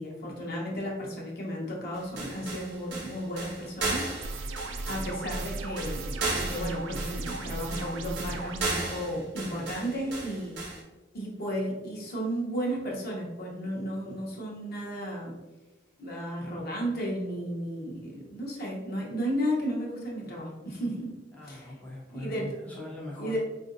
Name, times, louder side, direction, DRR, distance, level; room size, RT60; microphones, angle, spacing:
voice 1, 0.0-4.1 4.3-4.6 4.9-10.6 11.1-15.3 16.0-21.1 21.4-21.7 22.1-22.5 23.2-23.4, equal, 55° left, -3 dB, 0.9 m, -33 dB
sound 1, 1.9-10.8, right 3 dB, 65° right, 0.8 m, -35 dB
sound 2, 4.2-8.6, right 2 dB, 80° right, 0.4 m, -36 dB
voice 2, 21.3-23.4, left 1 dB, 10° left, -5 dB, 0.5 m, -41 dB
3.7 x 2.5 x 2.5 m, 1.1 s
head